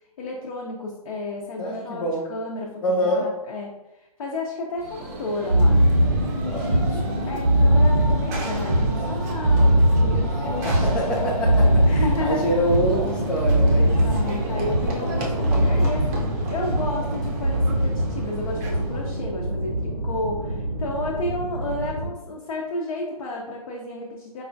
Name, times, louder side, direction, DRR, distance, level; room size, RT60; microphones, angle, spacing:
voice 1, 0.2-3.7 3.9-5.8 6.3-11.3 11.9-12.6 13.7-24.4, left 2 dB, 55° left, -2 dB, 0.7 m, -32 dB
voice 2, 1.6-2.3 2.8-3.3 6.5-7.4 10.3-14.0, equal, 5° left, -3 dB, 0.3 m, -26 dB
Run / Train, 4.8-19.2, right 1 dB, 25° right, 0.7 m, -34 dB
sound 1, 5.5-22.1, right 1 dB, 85° right, 1.3 m, -22 dB
4.8 x 2.2 x 2.6 m, 0.96 s
hypercardioid pair, 140°, 20 cm